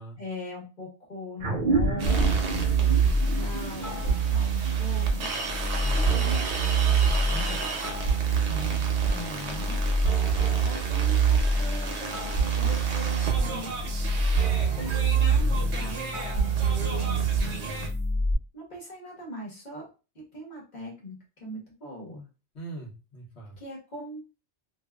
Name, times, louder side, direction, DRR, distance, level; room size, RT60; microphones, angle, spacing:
voice 1, 0.2-5.3 5.9-7.6 8.5-9.8 10.6-13.7 14.8-16.0 16.3-17.6 18.5-19.9 20.1-22.3 23.6-24.2, left 1 dB, 40° left, -3 dB, 1.2 m, -40 dB
sound 1, 1.4-6.3, right 2 dB, 50° right, 0.6 m, -30 dB
sound 2, 2.0-17.9, right 4 dB, 70° right, 0.9 m, -35 dB
sound 3, 2.1-18.3, right 5 dB, 85° left, 1.4 m, -26 dB
voice 2, 5.8-6.3 15.5-16.6 17.1-17.3 17.6-18.0 22.5-23.6, right 2 dB, 70° left, -2 dB, 1.2 m, -42 dB
2.6 x 2.3 x 2.2 m, 0.32 s
omnidirectional pair, 1.2 m